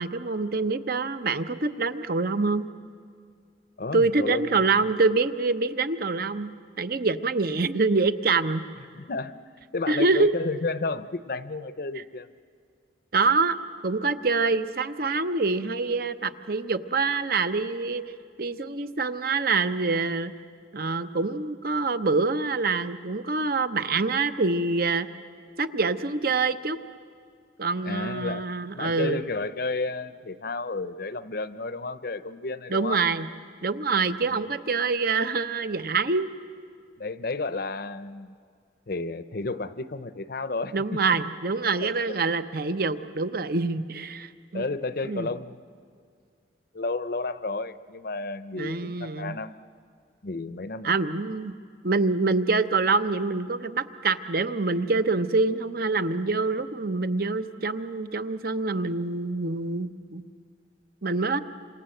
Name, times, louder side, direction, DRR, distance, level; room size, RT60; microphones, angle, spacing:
voice 1, 0.0-2.7 3.9-6.5 6.8-8.6 9.9-10.3 13.1-13.6 13.8-18.0 18.4-20.3 20.7-25.1 25.6-26.8 27.6-29.2 32.7-33.3 33.6-36.3 40.7-44.6 45.0-45.3 48.5-49.3 50.8-51.5 51.8-60.2 61.0-61.4, right 3 dB, 50° right, 11 dB, 0.8 m, -25 dB
voice 2, 3.8-4.9 8.9-9.3 9.7-12.3 27.8-28.5 28.7-33.0 37.0-38.3 38.9-41.0 41.8-42.2 44.5-45.6 46.7-49.6 50.2-51.0, left 3 dB, 50° left, 13 dB, 0.7 m, -32 dB
27.5 x 26.5 x 7.8 m, 2.2 s
head